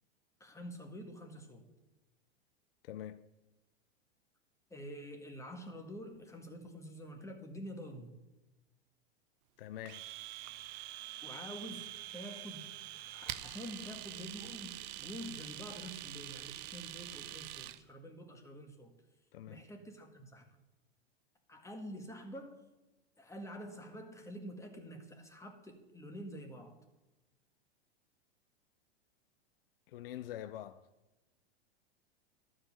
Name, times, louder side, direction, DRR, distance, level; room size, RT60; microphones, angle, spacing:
voice 1, 0.4-1.6 4.7-8.1 11.2-12.7 13.1-18.9 19.5-20.4 21.5-22.6 23.2-26.8, equal, 10° left, 1.7 m, -47 dB
voice 2, 2.8-3.3 9.6-10.1 19.3-19.6 29.9-30.9, left 12 dB, 65° left, 0.6 m, -45 dB
Domestic sounds home sounds, 9.9-17.8, right 15 dB, 45° right, 0.6 m, -45 dB
12.5 x 5.0 x 7.1 m
figure-of-eight pair, 95°, 31 cm